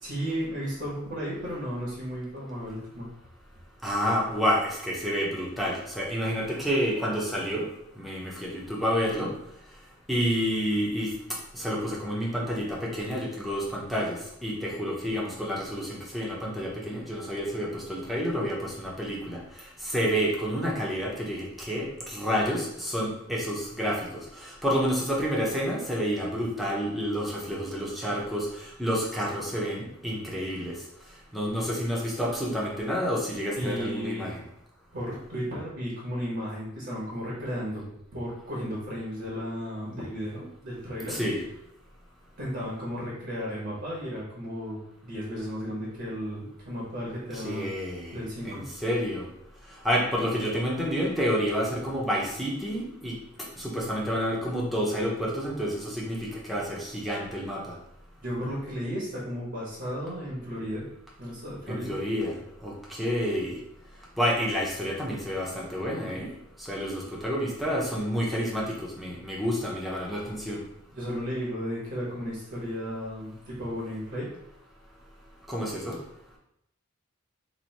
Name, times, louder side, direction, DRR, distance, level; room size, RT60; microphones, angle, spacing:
voice 1, 0.0-3.1 33.5-34.4 34.9-41.2 42.4-47.7 48.1-48.6 58.2-60.9 61.2-61.9 70.9-74.3, equal, 55° right, -5 dB, 1.1 m, -34 dB
voice 2, 3.8-7.6 8.0-9.3 10.1-11.1 11.5-30.8 31.3-34.4 41.1-41.4 47.3-48.2 48.4-49.3 49.8-53.2 53.6-57.6 61.7-63.6 64.2-66.3 66.6-70.6 75.5-76.0, equal, ahead, -5 dB, 0.8 m, -29 dB
3.0 x 2.7 x 4.1 m, 0.79 s
head